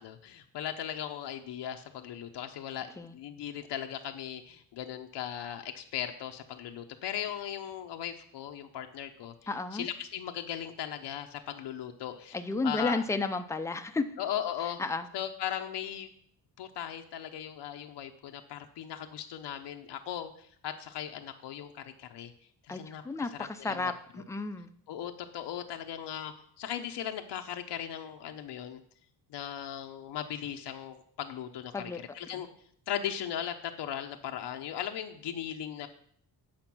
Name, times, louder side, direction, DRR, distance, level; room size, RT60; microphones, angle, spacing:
voice 1, 0.0-9.3 9.7-12.4 12.6-13.0 14.2-14.8 15.1-16.1 16.6-22.3 22.6-23.0 23.6-23.9 24.9-28.8 29.3-32.5 32.9-35.9, left 10 dB, 75° left, 5 dB, 0.8 m, -38 dB
voice 2, 9.5-9.9 12.3-14.2 14.8-15.1 22.7-24.7 31.7-32.0, left 3 dB, 5° left, 7 dB, 0.5 m, -32 dB
8.8 x 5.1 x 6.0 m, 0.63 s
cardioid pair, 120°, 41 cm